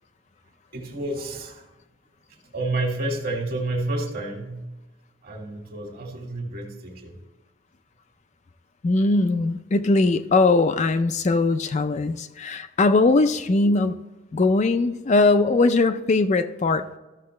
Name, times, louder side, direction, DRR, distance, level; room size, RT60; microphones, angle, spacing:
voice 1, 0.7-1.6 2.3-4.7 5.2-7.2, right 2 dB, 45° right, 2 dB, 1.8 m, -30 dB
voice 2, 8.8-13.9 14.3-16.9, left 3 dB, 35° left, 8 dB, 0.4 m, -20 dB
13.5 x 6.8 x 3.2 m, 1.1 s
head